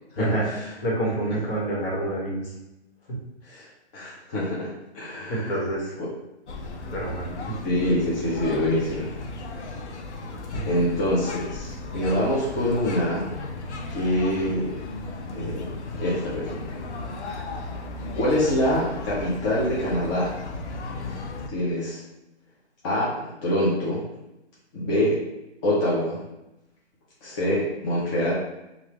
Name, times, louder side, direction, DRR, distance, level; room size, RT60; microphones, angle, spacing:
voice 1, 0.1-0.7 3.4-3.7 3.9-5.6 6.0-6.1 7.6-9.1 10.6-13.3 13.9-14.8 15.3-15.7 16.0-16.9 18.1-20.3 21.5-22.0 22.8-24.0 24.7-25.2 25.6-26.2 27.2-28.3, left 1 dB, 25° left, -7 dB, 0.6 m, -25 dB
voice 2, 0.8-2.5 5.3-5.9 6.9-7.5 10.5-10.7, right 1 dB, 55° left, -4 dB, 1.5 m, -27 dB
sound 1, 6.5-21.5, left 2 dB, 80° left, 0.7 m, -35 dB
3.1 x 2.5 x 3.0 m, 0.92 s
hypercardioid pair, 135°, 34 cm